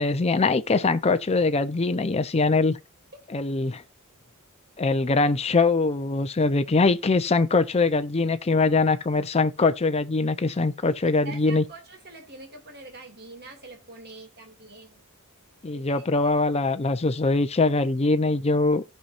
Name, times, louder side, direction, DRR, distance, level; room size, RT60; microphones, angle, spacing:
voice 1, 0.0-2.8 3.3-3.8 4.8-11.6 15.6-18.8, left 3 dB, 30° left, 0.6 m, -22 dB
voice 2, 11.0-15.0 15.7-16.3, right 3 dB, 50° right, 2.3 m, -45 dB
17.0 x 5.7 x 2.5 m
head